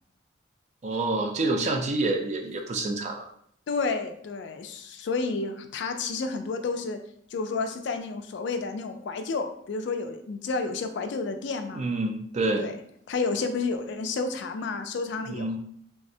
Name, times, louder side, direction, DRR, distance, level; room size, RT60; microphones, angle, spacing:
voice 1, 0.8-3.3 11.7-12.7 15.3-15.6, right 2 dB, 35° right, 4 dB, 0.3 m, -27 dB
voice 2, 3.7-7.0 7.3-11.9 12.6-12.8 13.1-15.6, left 4 dB, 60° left, 7 dB, 0.3 m, -30 dB
3.4 x 2.0 x 2.6 m, 0.65 s
head